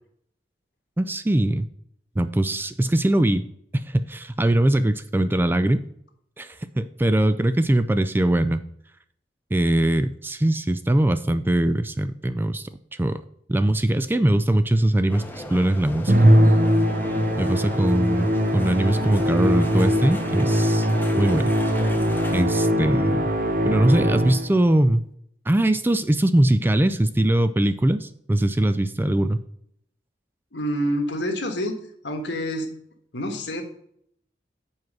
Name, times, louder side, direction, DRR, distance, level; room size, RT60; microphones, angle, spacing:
voice 1, 1.0-1.7 2.2-3.4 3.8-5.8 6.4-8.6 9.5-12.7 13.0-13.2 13.5-16.4 17.4-20.9 21.2-21.5 22.3-23.3 23.7-25.0 25.5-29.4, right 1 dB, 10° right, 12 dB, 0.3 m, -21 dB
sound 1, 15.1-22.5, left 1 dB, 10° left, 0.8 m, -37 dB
Musical instrument, 16.1-24.6, equal, 50° right, 0.8 m, -21 dB
voice 2, 30.5-31.7 32.0-32.7 33.1-33.6, equal, 75° left, 5 dB, 1.4 m, -27 dB
7.3 x 4.7 x 6.1 m, 0.69 s
head